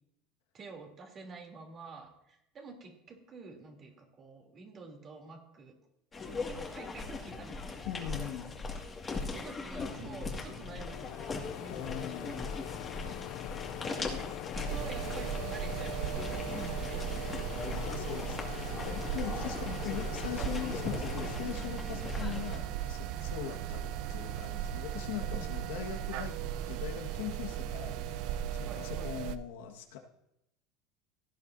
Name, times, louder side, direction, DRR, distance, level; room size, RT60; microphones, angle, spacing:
voice 1, 0.5-5.7 6.1-8.1 9.3-11.3 11.6-12.4 12.7-13.5 13.8-17.7 19.3-19.9 20.4-21.0 25.3-25.8 28.6-29.1, right 4 dB, 35° right, 2 dB, 3.1 m, -49 dB
sound 1, 6.1-22.6, left 3 dB, 20° left, 2.0 m, -40 dB
voice 2, 7.9-8.5 11.7-12.4 17.7-26.4 26.7-30.0, left 10 dB, 85° left, 3 dB, 1.5 m, -41 dB
sound 2, 9.8-22.4 22.8-24.0, left 15 dB, 65° left, 0.3 m, -44 dB
sound 3, 14.7-29.4, right 10 dB, 65° right, 0.6 m, -37 dB
16.5 x 10.5 x 2.7 m, 0.83 s
supercardioid pair, 120°, 0 cm